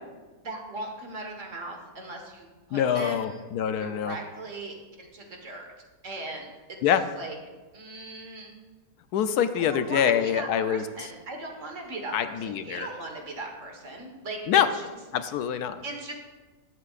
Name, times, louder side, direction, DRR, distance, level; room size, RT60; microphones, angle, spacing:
voice 1, 0.4-3.5 3.8-5.7 6.0-7.3 7.7-8.6 9.5-14.9 15.8-16.1, right 2 dB, 50° right, 2 dB, 1.8 m, -39 dB
voice 2, 2.7-4.2 6.8-7.0 9.1-10.8 12.1-12.9 14.5-14.7 15.1-15.8, left 9 dB, 80° left, 10 dB, 1.1 m, -25 dB
21.0 x 7.8 x 2.5 m, 1.3 s
omnidirectional pair, 1.7 m